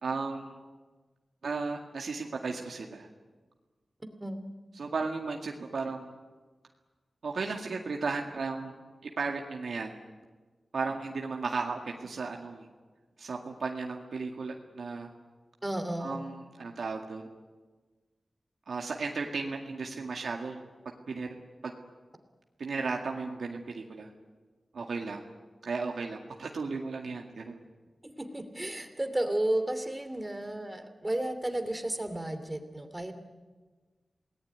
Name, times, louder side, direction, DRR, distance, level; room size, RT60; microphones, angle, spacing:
voice 1, 0.0-0.6 1.4-3.1 4.7-6.1 7.2-8.8 9.2-10.0 10.7-12.7 13.2-15.1 16.0-17.2 18.7-20.6 21.1-21.4 21.6-21.7 22.6-24.1 24.7-25.2 25.6-27.6, right 4 dB, 85° right, 1 dB, 2.0 m, -35 dB
voice 2, 15.6-16.2 28.0-33.1, right 1 dB, 20° right, 8 dB, 2.8 m, -33 dB
27.5 x 19.0 x 9.3 m, 1.3 s
wide cardioid pair, 90°, 0 cm